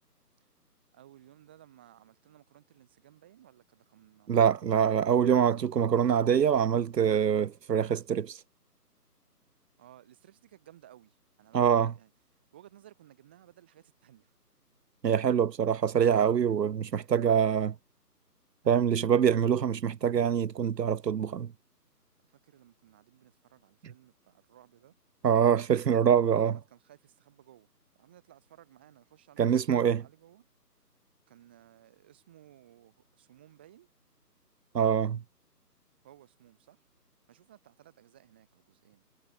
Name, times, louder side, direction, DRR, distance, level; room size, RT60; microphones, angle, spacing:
voice 1, 0.9-4.6 9.8-12.1 12.5-14.3 22.3-24.9 26.2-27.7 28.0-30.5 31.3-33.9 36.0-36.9 37.3-39.0, right 12 dB, 5° right, 1.2 m, -58 dB
voice 2, 4.3-8.4 11.5-11.9 15.0-17.8 18.7-21.5 25.2-26.6 29.4-30.0 34.7-35.2, right 8 dB, 85° right, 0.6 m, -24 dB
figure-of-eight pair, 150°, 49 cm